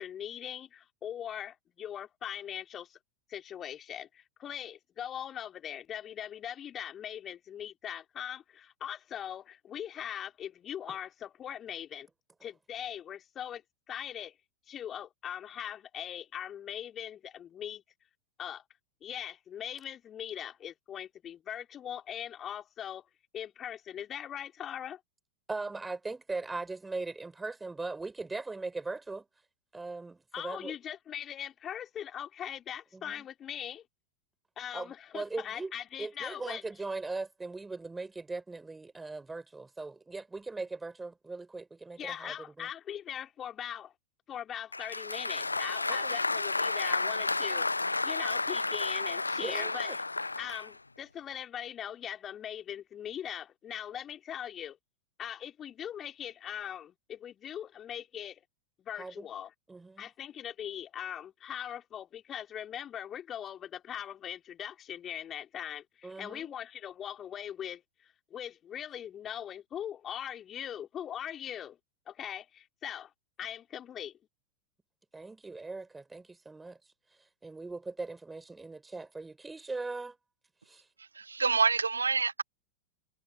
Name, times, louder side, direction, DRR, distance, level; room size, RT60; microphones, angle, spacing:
voice 1, 0.0-3.0 3.3-12.1 12.4-13.6 13.9-14.4 14.7-17.8 18.4-18.6 19.0-23.1 23.3-25.0 30.3-33.8 34.6-36.6 42.0-43.9 44.3-47.7 48.0-49.9 50.4-54.8 55.2-58.4 58.8-59.5 60.0-71.8 72.1-73.1 73.4-74.1, left 10 dB, 25° left, 3.7 m, -41 dB
voice 2, 25.5-29.3 29.7-30.8 32.9-33.3 34.7-35.7 36.0-42.7 45.9-46.2 49.4-50.0 59.0-59.3 59.7-60.1 66.0-66.5 75.1-76.8 77.4-80.1 80.7-80.8, right 3 dB, 10° right, 3.9 m, -39 dB
Applause, 44.7-50.7, left 3 dB, 80° left, 0.4 m, -31 dB
voice 3, 81.2-82.4, right 4 dB, 75° right, 0.7 m, -27 dB
figure-of-eight pair, 90°, 0 cm